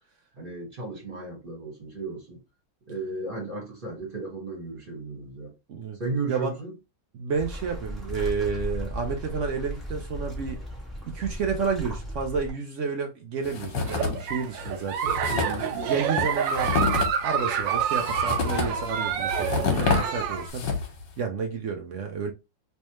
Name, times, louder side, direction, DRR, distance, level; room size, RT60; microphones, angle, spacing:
voice 1, 0.4-2.4 2.9-5.5 6.0-6.7 15.3-16.0, right 3 dB, 30° right, 1.6 m, -35 dB
voice 2, 7.1-10.6 11.0-15.1 15.9-20.7 21.2-22.3, right 5 dB, 70° right, 0.7 m, -30 dB
sound 1, 7.3-12.5, equal, ahead, 1.2 m, -36 dB
sound 2, 13.4-14.3 14.6-14.7 15.0-21.0, left 5 dB, 75° left, 1.7 m, -28 dB
Giggle, 13.8-20.5, right 8 dB, 90° right, 1.3 m, -28 dB
3.3 x 3.2 x 3.0 m
omnidirectional pair, 1.9 m